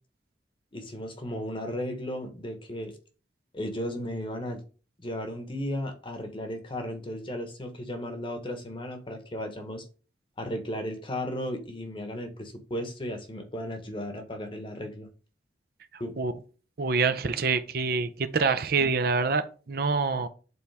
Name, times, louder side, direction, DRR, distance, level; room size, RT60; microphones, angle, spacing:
voice 1, 0.7-2.9 3.5-4.6 5.0-9.8 10.4-15.1 16.0-16.1, equal, 30° left, 1.1 m, -35 dB
voice 2, 16.8-20.3, right 4 dB, 60° right, 0.6 m, -26 dB
8.1 x 4.2 x 3.5 m
head